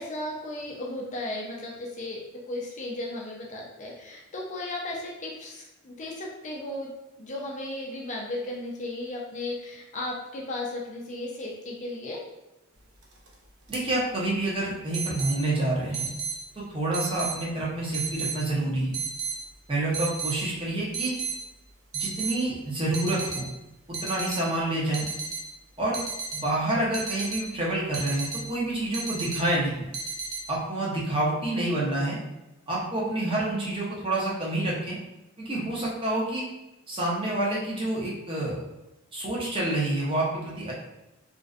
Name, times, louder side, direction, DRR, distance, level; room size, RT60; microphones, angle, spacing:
voice 1, 0.0-6.9 7.2-12.2, left 1 dB, 35° left, -2 dB, 0.4 m, -35 dB
sound 1, 13.0-13.3 13.7-13.8 14.9-15.4 15.9-16.4 16.9-17.4 17.9-18.4 18.9-19.4 19.9-20.4 20.9-21.4 21.9-22.4 22.9-23.4 23.9-24.4 24.9-25.4 25.9-26.4 26.9-27.4 27.9-28.4 28.9-29.4 29.9-30.4, right 5 dB, 85° right, 0.5 m, -33 dB
voice 2, 13.7-16.1 16.5-19.0 19.7-21.1 21.9-23.5 23.9-25.1 25.8-26.0 26.3-29.7 30.5-32.2 32.7-35.0 35.4-36.4 36.9-38.6 39.1-40.7, right 1 dB, 25° right, -5 dB, 0.6 m, -28 dB
2.5 x 2.1 x 2.4 m, 0.95 s
head